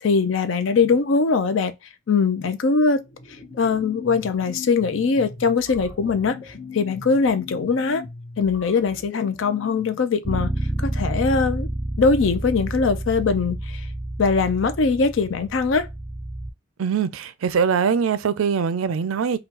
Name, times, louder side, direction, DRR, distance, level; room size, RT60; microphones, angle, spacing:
voice 1, 0.0-1.7 2.1-3.0 3.6-8.0 8.4-10.5 10.8-11.7 12.0-13.9 14.2-15.9, left 4 dB, 70° left, 0.5 m, -21 dB
sound 1, 3.0-10.1, left 4 dB, 45° left, 0.9 m, -40 dB
Bass guitar, 10.2-16.5, right 1 dB, 10° right, 0.3 m, -29 dB
voice 2, 16.8-19.4, right 6 dB, 80° right, 0.4 m, -22 dB
3.6 x 2.3 x 2.8 m
head